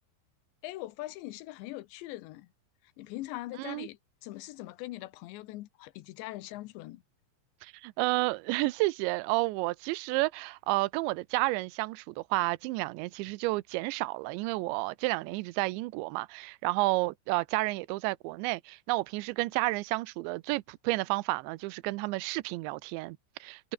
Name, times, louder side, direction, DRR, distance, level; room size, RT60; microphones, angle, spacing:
voice 1, 0.6-2.5 3.0-7.0, left 17 dB, 85° left, 3.3 m, -41 dB
voice 2, 7.6-23.7, right 22 dB, 85° right, 3.0 m, -31 dB
omnidirectional pair, 5.1 m